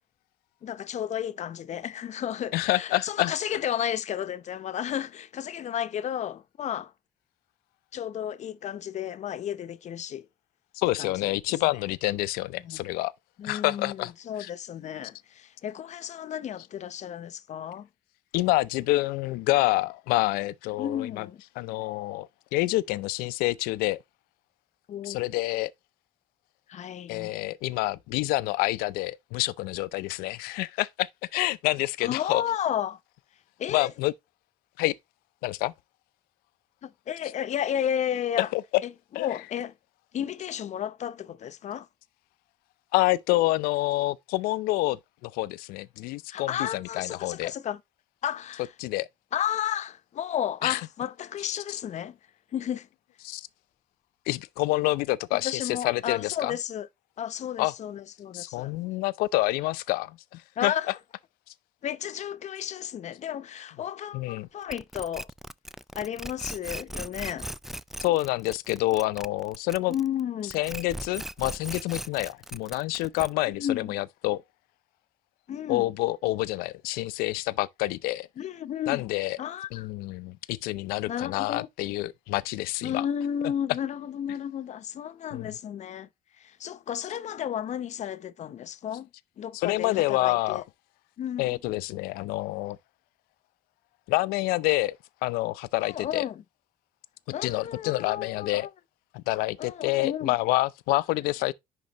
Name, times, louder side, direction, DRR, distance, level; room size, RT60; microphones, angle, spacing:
voice 1, 0.6-6.9 7.9-10.2 11.0-11.3 12.6-12.8 13.4-17.9 20.8-21.4 24.9-25.2 26.7-27.3 32.0-33.0 33.6-33.9 36.8-38.5 38.8-39.7 40.1-41.9 46.3-47.8 48.2-48.7 49.3-52.2 52.5-52.9 55.4-56.9 57.2-58.7 60.6-60.9 61.8-65.3 65.9-67.5 69.9-70.5 73.5-73.9 75.5-75.9 78.4-79.0 79.4-79.9 81.1-81.7 82.8-86.1 86.4-89.1 89.4-90.6 91.2-91.6 95.8-96.4 97.3-98.7 99.6-100.3, left 9 dB, 50° left, 0.8 m, -33 dB
voice 2, 2.5-3.3 10.7-13.1 13.4-14.1 14.4-14.5 18.3-21.3 21.6-24.0 25.0-25.7 27.1-32.4 33.7-34.1 34.8-34.9 35.4-35.7 38.5-38.6 39.1-39.4 42.9-47.5 48.8-49.1 50.6-50.8 53.2-53.5 54.3-56.5 57.6-57.7 58.3-60.7 64.1-64.5 68.0-69.9 70.5-74.4 75.7-78.3 78.9-79.4 79.7-83.0 85.3-85.5 89.5-90.6 91.4-92.8 94.1-95.0 95.2-96.2 97.4-98.7 99.1-101.5, left 19 dB, 85° left, 0.5 m, -27 dB
sound 1, 64.7-70.2 70.5-73.6, equal, ahead, 0.3 m, -38 dB
10.5 x 3.7 x 3.0 m
supercardioid pair, 85°, 15 cm